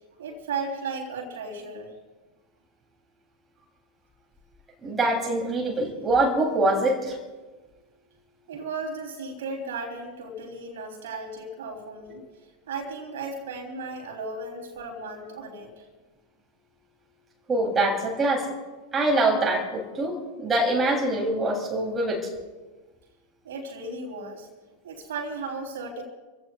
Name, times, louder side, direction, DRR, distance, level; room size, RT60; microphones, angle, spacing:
voice 1, 0.2-1.9 8.5-12.2 12.7-15.8 23.4-24.5 24.8-26.0, right 3 dB, 60° right, 0 dB, 3.5 m, -35 dB
voice 2, 4.8-7.2 17.5-18.5 18.9-22.3, right 2 dB, 20° right, -1 dB, 3.3 m, -24 dB
29.5 x 16.0 x 2.4 m, 1.3 s
figure-of-eight pair, 90°, 0 cm